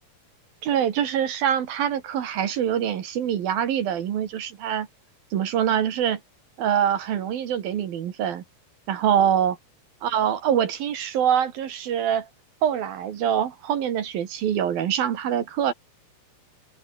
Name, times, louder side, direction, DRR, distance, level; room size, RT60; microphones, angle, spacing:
voice 1, 0.6-4.9 5.3-6.2 6.6-8.4 8.9-9.6 10.0-12.3 12.6-15.7, right 9 dB, 55° right, 3.1 m, -24 dB
omnidirectional pair, 5.8 m